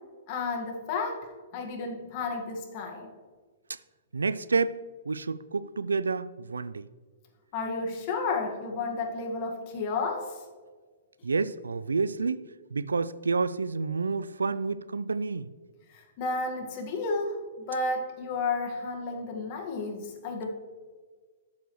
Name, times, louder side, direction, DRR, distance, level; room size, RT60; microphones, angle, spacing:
voice 1, 0.3-3.1 7.5-10.4 15.9-17.4 17.7-20.5, left 3 dB, 45° left, 1.8 m, -32 dB
voice 2, 4.1-4.8 5.1-6.9 11.2-15.5, right 4 dB, 90° right, 0.3 m, -29 dB
12.5 x 7.0 x 3.2 m
hypercardioid pair, 120°, 0 cm